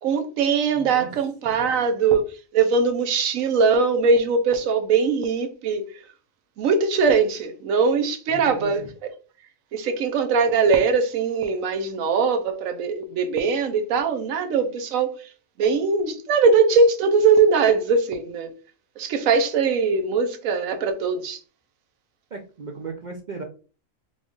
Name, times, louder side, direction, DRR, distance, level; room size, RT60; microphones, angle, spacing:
voice 1, 0.0-2.2 2.5-5.8 6.6-8.8 9.7-15.2 15.6-18.5 19.0-21.4, right 5 dB, 80° right, 1.1 m, -21 dB
voice 2, 0.7-1.2 1.5-1.7 8.3-8.9 22.3-23.4, right 4 dB, 60° right, 0.5 m, -36 dB
3.6 x 2.4 x 3.8 m
omnidirectional pair, 1.4 m